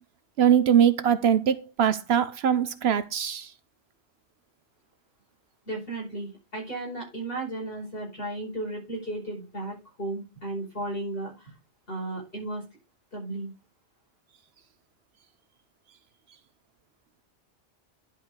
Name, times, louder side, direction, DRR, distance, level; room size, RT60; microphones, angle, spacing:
voice 1, 0.4-3.5, right 8 dB, 65° right, 0.9 m, -22 dB
voice 2, 5.7-11.5 11.9-12.6 13.1-13.5, right 2 dB, 50° left, 5.2 m, -34 dB
10.5 x 5.1 x 4.7 m
omnidirectional pair, 1.2 m